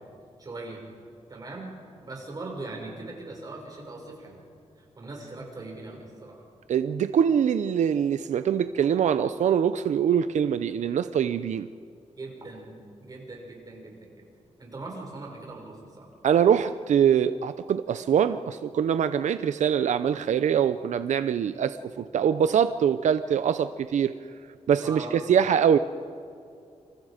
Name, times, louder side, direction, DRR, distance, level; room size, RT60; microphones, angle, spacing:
voice 1, 0.4-0.8 1.3-1.7 2.0-4.4 4.8-6.4 12.2-14.2 14.6-16.1 24.8-25.2, right 2 dB, 35° right, 0 dB, 6.0 m, -40 dB
voice 2, 6.7-11.7 16.2-24.1 24.7-25.8, right 8 dB, 90° right, 11 dB, 0.6 m, -23 dB
28.0 x 27.0 x 5.1 m, 2.4 s
wide cardioid pair, 165°, 12 cm